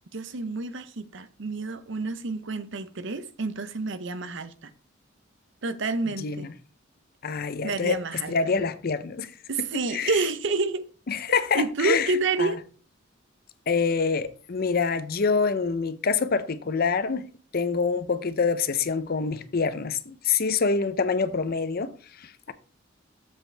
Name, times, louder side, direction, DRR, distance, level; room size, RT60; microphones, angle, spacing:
voice 1, 0.1-4.7 5.6-6.5 7.6-8.4 9.5-10.9 11.5-12.6, right 3 dB, 65° right, 0.8 m, -29 dB
voice 2, 6.2-6.5 7.2-8.0 8.3-9.3 9.6-9.7 9.9-10.1 11.1-12.1 12.4-12.5 13.7-17.3 17.5-21.9 22.2-22.5, left 5 dB, 50° left, 0.6 m, -26 dB
7.4 x 7.3 x 3.3 m
head